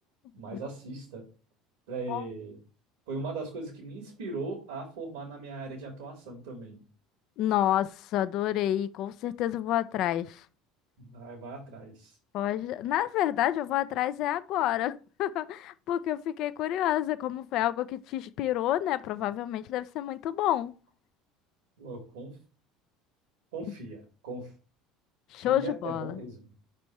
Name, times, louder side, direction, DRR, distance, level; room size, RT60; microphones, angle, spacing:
voice 1, 0.3-1.3 1.9-2.6 3.1-6.8 11.0-12.2 21.8-22.4 23.5-24.5 25.4-26.5, right 3 dB, 85° right, 2.2 m, -39 dB
voice 2, 7.4-10.4 12.3-20.7 25.3-26.1, left 12 dB, 60° left, 0.4 m, -29 dB
5.2 x 4.3 x 4.7 m
supercardioid pair, 95°, 0 cm